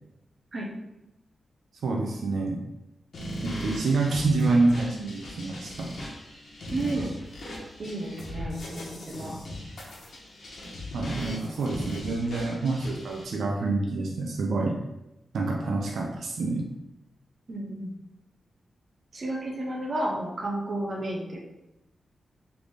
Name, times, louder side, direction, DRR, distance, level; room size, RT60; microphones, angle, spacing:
voice 1, 1.8-2.6 3.4-5.9 10.9-14.8 15.3-16.7, right 3 dB, 85° right, 0 dB, 0.5 m, -27 dB
sound 1, 3.1-13.2, left 1 dB, 65° left, 1.2 m, -38 dB
voice 2, 6.7-7.1 7.8-9.4 17.5-17.9 19.1-21.4, right 1 dB, 40° right, -2 dB, 0.8 m, -32 dB
3.8 x 3.4 x 3.3 m, 0.92 s
wide cardioid pair, 130°, 0 cm